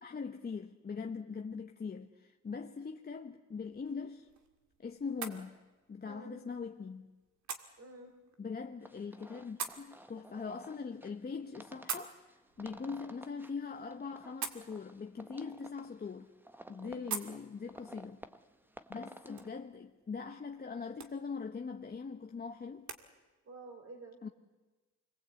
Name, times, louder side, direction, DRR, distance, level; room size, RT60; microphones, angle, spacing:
voice 1, 0.0-4.3 4.8-5.6 5.9-7.1 8.4-12.2 12.6-16.3 16.7-18.2 18.9-22.9 24.2-24.3, left 5 dB, 30° left, 1.1 m, -42 dB
sound 1, 3.5-23.0, right 6 dB, 70° right, 2.2 m, -49 dB
voice 2, 6.1-6.4 7.8-8.1 16.8-17.2 23.4-24.2, right 2 dB, 50° right, 3.5 m, -51 dB
sound 2, 8.8-19.5, right 1 dB, 5° right, 1.1 m, -54 dB
26.0 x 21.5 x 8.3 m
cardioid pair, 90°, 30 cm